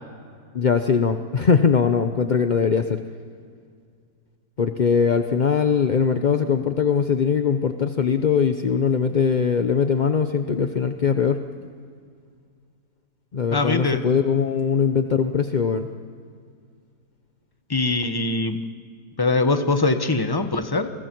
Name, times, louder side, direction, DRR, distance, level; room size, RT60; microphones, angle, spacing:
voice 1, 0.5-3.0 4.6-11.4 13.3-15.9, left 6 dB, 50° left, 7 dB, 0.5 m, -21 dB
voice 2, 13.5-14.0 17.7-18.6 19.2-20.9, left 3 dB, 15° left, 8 dB, 0.9 m, -22 dB
30.0 x 22.0 x 4.6 m, 2.1 s
omnidirectional pair, 1.9 m